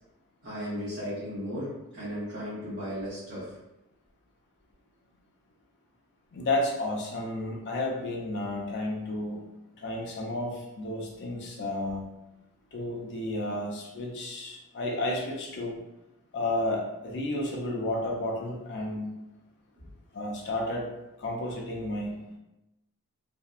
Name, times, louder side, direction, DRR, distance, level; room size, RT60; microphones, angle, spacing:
voice 1, 0.4-3.5, equal, 50° right, -10 dB, 0.8 m, -35 dB
voice 2, 6.3-9.5 9.8-12.0 12.7-15.7 16.3-19.1 20.1-20.9 21.2-22.2, left 1 dB, 50° left, -1 dB, 0.5 m, -32 dB
2.6 x 2.2 x 2.3 m, 0.93 s
head